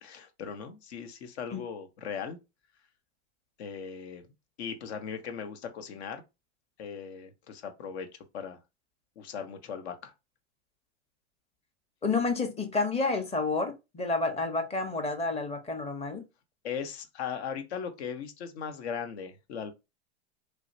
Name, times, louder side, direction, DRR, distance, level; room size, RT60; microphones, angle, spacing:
voice 1, 0.0-2.4 3.6-4.2 4.6-6.2 6.8-8.1 8.3-8.6 9.2-10.1 16.6-19.7, left 7 dB, 60° left, 0.9 m, -38 dB
voice 2, 12.0-16.2, left 3 dB, 15° left, 0.8 m, -30 dB
3.2 x 2.7 x 2.7 m
hypercardioid pair, 105°, 36 cm